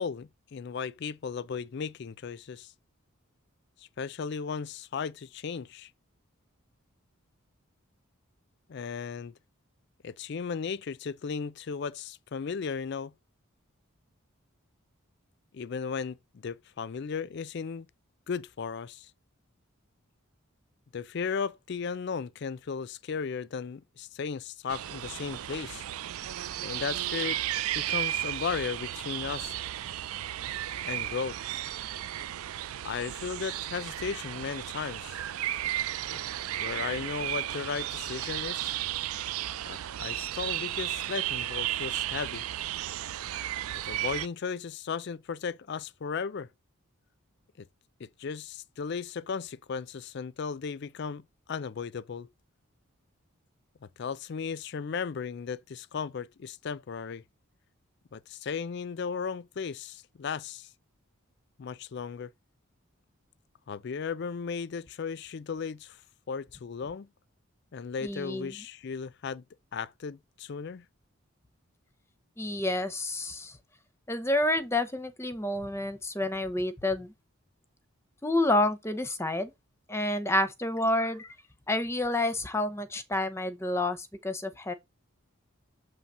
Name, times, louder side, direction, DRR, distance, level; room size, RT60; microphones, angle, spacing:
voice 1, 0.0-2.7 3.8-5.9 8.7-9.3 10.0-13.1 15.5-16.2 16.4-17.9 18.3-19.1 20.9-25.8 26.6-27.4 27.7-29.6 30.8-31.6 32.8-35.2 36.1-36.2 36.6-38.8 39.6-42.4 43.9-46.5 47.6-47.7 48.0-52.3 54.0-57.2 58.1-60.7 61.6-62.3 63.7-66.0 66.3-67.1 67.7-69.4 69.7-70.9, left 6 dB, 50° left, 0.4 m, -35 dB
sound 1, 24.7-44.3, right 13 dB, 80° right, 0.4 m, -34 dB
voice 2, 68.0-68.6 72.4-73.6 74.1-77.1 78.2-79.5 79.9-81.3 81.7-84.7, left 1 dB, 10° left, 0.7 m, -29 dB
7.3 x 3.2 x 5.4 m
head